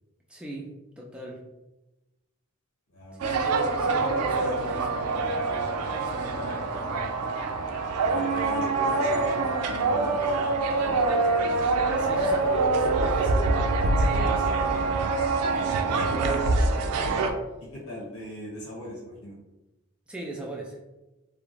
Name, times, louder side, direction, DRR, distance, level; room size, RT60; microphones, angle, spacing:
voice 1, 0.3-0.7 1.0-1.4 3.2-5.3 6.0-7.0 11.8-14.3 15.5-16.7 20.1-20.8, right 2 dB, 5° right, -2 dB, 0.3 m, -39 dB
voice 2, 2.9-3.3 8.0-9.4 9.7-10.1 11.4-11.6 14.0-14.7 17.7-19.4, left 1 dB, 70° left, -4 dB, 1.1 m, -40 dB
sound 1, 3.2-17.3, right 3 dB, 85° right, 0.3 m, -25 dB
2.3 x 2.0 x 3.0 m, 1.0 s
head